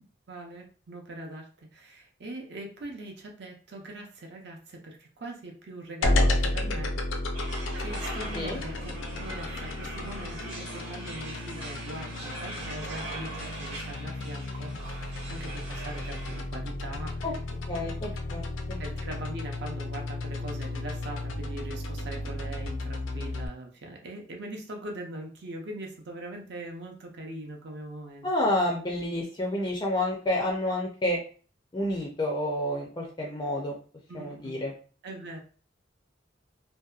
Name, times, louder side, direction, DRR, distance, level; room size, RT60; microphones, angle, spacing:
voice 1, 0.3-7.0 7.8-17.6 18.8-28.3 34.1-34.7 35.0-35.4, right 1 dB, 60° right, 1 dB, 0.6 m, -41 dB
sound 1, 6.0-23.5, left 2 dB, 80° left, 0.4 m, -33 dB
sound 2, 7.3-16.4, right 2 dB, 85° right, 1.0 m, -41 dB
voice 2, 17.7-18.8 28.2-31.2 31.7-33.8 34.1-34.7, left 1 dB, 20° left, -1 dB, 0.4 m, -29 dB
2.7 x 2.1 x 2.3 m, 0.40 s
head